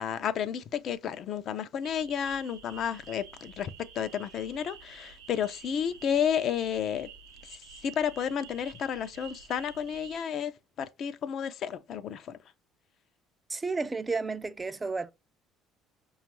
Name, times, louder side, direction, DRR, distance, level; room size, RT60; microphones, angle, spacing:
voice 1, 0.0-7.1 7.4-10.5 10.8-12.4, left 8 dB, 55° left, 0.4 m, -32 dB
sound 1, 1.8-10.2, right 6 dB, 90° right, 0.7 m, -50 dB
voice 2, 13.5-15.1, right 4 dB, 20° right, 0.4 m, -32 dB
5.1 x 2.3 x 3.0 m
supercardioid pair, 80°, 0 cm